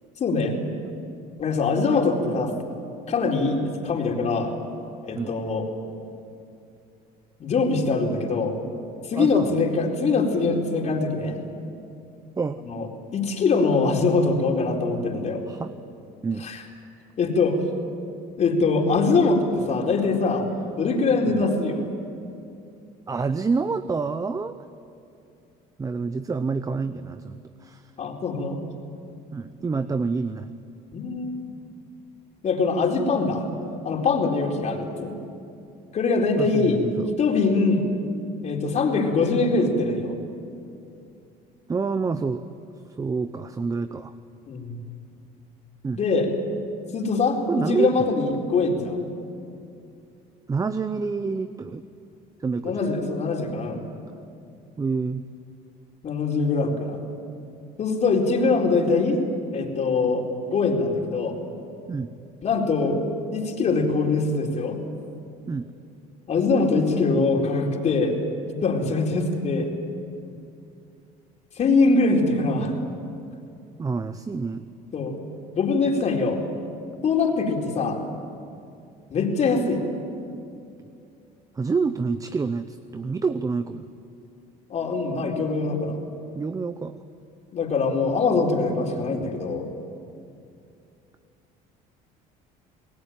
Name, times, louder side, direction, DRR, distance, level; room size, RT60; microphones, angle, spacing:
voice 1, 0.2-0.5 1.4-2.5 3.1-4.5 5.0-5.7 7.4-8.6 9.1-11.4 12.7-12.9 13.1-15.4 16.4-16.6 17.2-17.6 18.4-20.5 20.8-21.8 28.0-28.6 30.9-31.4 32.4-33.4 33.8-35.1 35.9-36.8 37.2-37.9 38.4-40.2 44.4-44.8 46.0-46.3 46.9-49.0 52.6-53.9 56.0-57.0 57.8-59.2 59.5-61.3 62.4-63.0 63.3-64.8 66.3-68.1 68.5-69.7 71.6-72.8 74.9-75.2 75.6-76.4 77.0-78.0 79.1-79.8 84.7-86.0 87.5-89.7, left 4 dB, 40° left, 1 dB, 4.2 m, -23 dB
voice 2, 9.1-9.6 12.4-12.6 15.5-15.7 16.2-16.4 21.3-21.4 23.1-24.6 25.8-27.9 29.3-30.5 36.4-37.1 41.7-42.4 43.0-44.1 45.8-46.0 47.5-48.1 50.5-51.8 52.4-52.9 54.8-55.2 61.9-62.1 65.5-65.7 73.8-74.6 81.6-83.9 86.3-87.0, right 4 dB, 20° right, 11 dB, 0.8 m, -27 dB
29.0 x 19.0 x 9.2 m, 2.5 s
cardioid pair, 115°, 17 cm